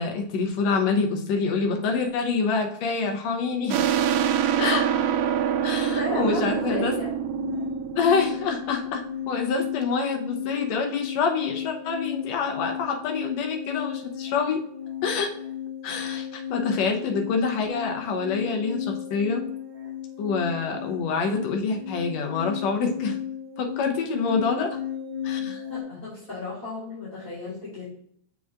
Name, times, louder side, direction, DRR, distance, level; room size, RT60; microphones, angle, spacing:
voice 1, 0.0-3.9 4.6-4.8 5.6-6.9 7.9-14.6 15.0-15.3 15.8-19.4 20.2-23.2 23.6-24.8 25.2-25.6, left 5 dB, 70° left, 2 dB, 1.9 m, -26 dB
sound 1, 3.7-9.0, right 9 dB, 90° right, 1.4 m, -25 dB
voice 2, 5.8-7.1 25.4-27.9, left 2 dB, 15° left, -11 dB, 2.3 m, -34 dB
sound 2, 7.3-25.8, left 9 dB, 15° right, 2.0 m, -34 dB
6.9 x 5.8 x 2.4 m, 0.68 s
omnidirectional pair, 3.5 m